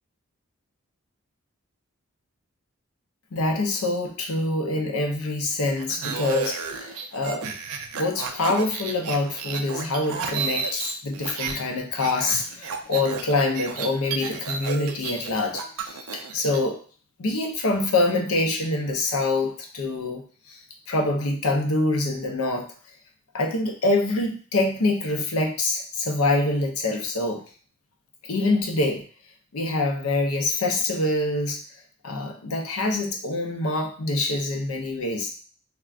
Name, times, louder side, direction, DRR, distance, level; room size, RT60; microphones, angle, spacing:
voice 1, 3.3-7.5 8.0-16.8 17.2-20.2 20.5-20.6 20.9-22.7 23.3-27.4 28.3-29.0 29.5-31.6 32.0-35.3, left 2 dB, 85° left, 2 dB, 0.6 m, -25 dB
sound 1, 5.8-11.6 11.9-16.6, right 5 dB, 90° right, 0.4 m, -32 dB
3.4 x 2.2 x 2.4 m, 0.41 s
head